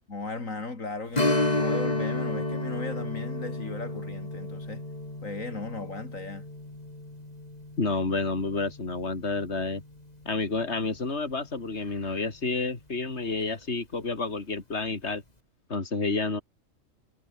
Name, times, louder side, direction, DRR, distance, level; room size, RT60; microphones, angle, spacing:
voice 1, 0.1-4.8 5.2-6.5, left 3 dB, 75° left, 3.7 m, -37 dB
Strum, 1.1-10.3 10.7-10.8 13.3-13.5 13.9-14.0, left 2 dB, 30° left, 3.8 m, -32 dB
voice 2, 7.8-9.8 10.3-15.2 15.7-16.4, left 3 dB, 55° left, 3.6 m, -29 dB
omnidirectional pair, 1.4 m